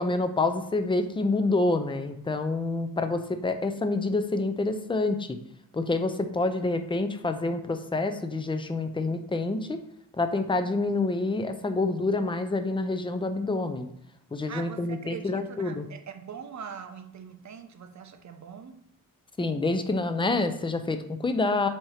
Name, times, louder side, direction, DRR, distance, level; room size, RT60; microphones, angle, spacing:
voice 1, 0.0-5.4 5.7-9.8 10.2-13.9 14.3-15.9 19.4-21.7, left 3 dB, 15° left, 0.5 m, -27 dB
voice 2, 14.5-18.8, right 7 dB, 55° right, 0.7 m, -42 dB
7.5 x 2.9 x 4.9 m
wide cardioid pair, 150°, 34 cm